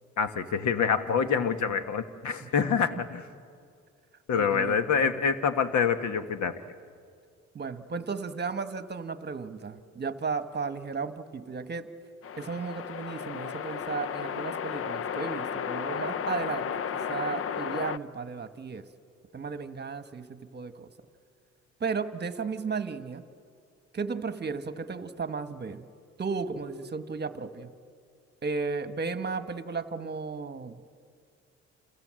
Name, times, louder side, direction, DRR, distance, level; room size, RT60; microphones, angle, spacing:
voice 1, 0.2-3.2 4.3-6.6, left 6 dB, 70° left, 10 dB, 1.5 m, -26 dB
voice 2, 2.4-2.8 4.3-5.1 7.5-11.9 12.4-16.8 17.1-18.9 19.3-20.9 21.8-23.2 23.9-25.9 26.2-27.7 28.4-30.8, right 4 dB, 35° right, 10 dB, 1.3 m, -34 dB
sound 1, 12.2-18.0, left 7 dB, 45° left, 0.6 m, -33 dB
28.5 x 27.5 x 7.6 m, 2.2 s
cardioid pair, 90°, 30 cm